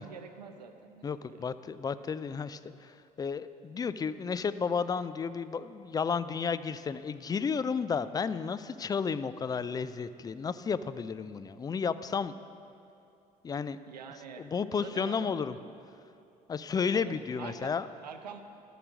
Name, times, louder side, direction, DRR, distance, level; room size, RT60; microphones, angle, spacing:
voice 1, 0.0-1.6 13.9-15.4 16.9-18.4, right 6 dB, 80° right, 7 dB, 0.6 m, -46 dB
voice 2, 1.0-2.9 3.2-12.3 13.4-13.8 14.4-15.6 16.5-17.9, left 6 dB, 20° left, 14 dB, 0.3 m, -32 dB
13.0 x 4.9 x 6.2 m, 2.6 s
figure-of-eight pair, 55°, 21 cm